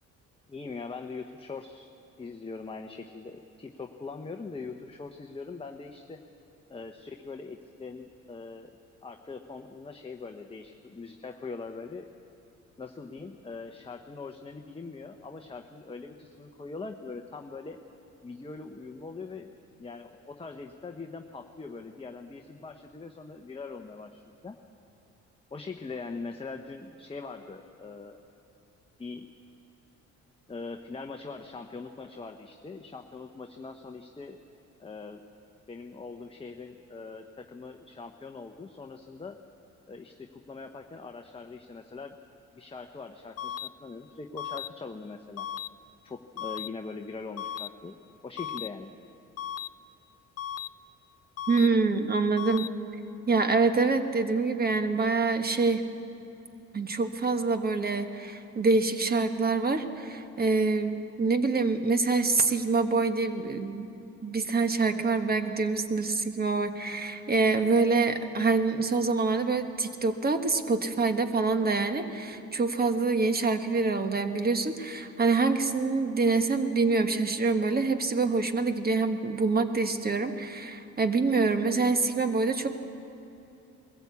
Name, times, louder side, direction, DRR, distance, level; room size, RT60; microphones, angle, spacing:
voice 1, 0.5-1.9 2.2-6.2 6.7-8.7 9.0-12.1 12.8-17.8 18.2-24.6 25.5-28.2 29.0-29.3 30.5-34.4 34.8-35.2 35.7-39.4 39.9-42.2 42.5-45.5 46.0-48.0 48.2-48.9, left 4 dB, 20° left, 4 dB, 0.9 m, -42 dB
sound 1, 43.4-43.7 44.4-44.7 45.4-45.7 46.4-46.7 47.4-47.7 48.4-48.7 49.4-49.7 50.4-50.7 51.4-51.7 52.4-52.7, left 10 dB, 55° left, 0.5 m, -35 dB
voice 2, 51.5-52.7 53.3-55.8 56.7-63.9 64.2-82.7, right 3 dB, 30° right, 8 dB, 1.4 m, -26 dB
21.5 x 14.5 x 8.3 m, 2.9 s
cardioid pair, 90°, 30 cm